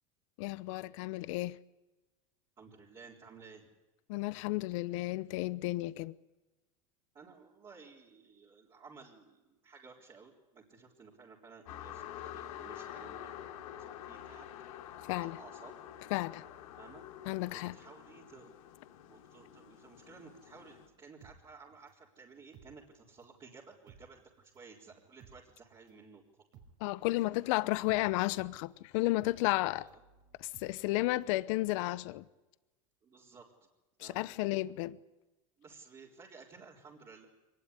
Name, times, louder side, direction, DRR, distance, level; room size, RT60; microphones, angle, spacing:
voice 1, 0.4-1.6 4.1-6.1 15.1-15.4 16.1-16.4 17.3-17.8 26.8-29.9 30.4-32.2 34.0-35.0, left 19 dB, 70° left, 0.9 m, -33 dB
voice 2, 2.6-3.7 7.1-14.5 15.2-15.7 16.8-17.0 17.5-18.5 19.1-26.2 27.2-27.4 29.1-29.4 29.8-30.0 33.0-33.5 34.0-34.3 35.6-37.2, right 5 dB, 25° right, 4.0 m, -55 dB
sound 1, 11.7-20.9, left 11 dB, 85° left, 3.5 m, -48 dB
sound 2, 21.2-23.4 23.7-31.4 31.7-31.8, right 6 dB, 55° right, 5.0 m, -60 dB
23.5 x 20.0 x 9.8 m
supercardioid pair, 130°, 17 cm